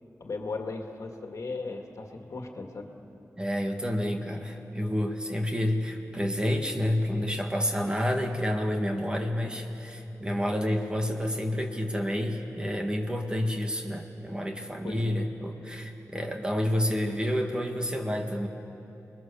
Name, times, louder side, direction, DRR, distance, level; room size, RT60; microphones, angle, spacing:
voice 1, 0.2-2.9 14.8-15.2, left 3 dB, 65° left, 3 dB, 2.0 m, -37 dB
voice 2, 3.4-18.5, equal, 15° right, 3 dB, 1.8 m, -29 dB
29.5 x 21.0 x 6.9 m, 3.0 s
wide cardioid pair, 115°, 6 cm